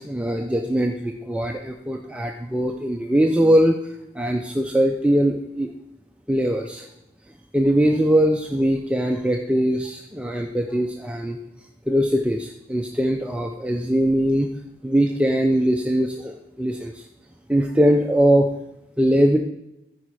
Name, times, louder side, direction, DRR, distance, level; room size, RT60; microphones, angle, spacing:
voice 1, 0.0-5.7 6.3-6.9 7.5-11.4 11.9-14.5 14.8-17.1 17.5-18.5 19.0-19.4, equal, 5° right, 3 dB, 0.4 m, -21 dB
14.0 x 5.1 x 4.8 m, 0.87 s
head